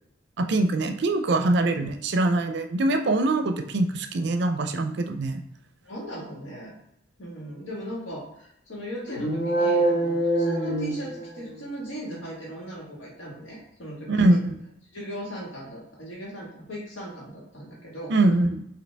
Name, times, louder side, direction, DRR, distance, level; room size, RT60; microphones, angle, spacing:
voice 1, 0.4-5.4 14.1-14.6 18.1-18.6, right 2 dB, 60° right, 7 dB, 0.5 m, -23 dB
voice 2, 5.8-6.7 7.2-14.4 14.9-18.1, right 1 dB, 80° left, -4 dB, 1.8 m, -38 dB
sound 1, 9.1-11.6, right 1 dB, 55° left, 1.0 m, -25 dB
5.1 x 2.8 x 3.4 m, 0.77 s
head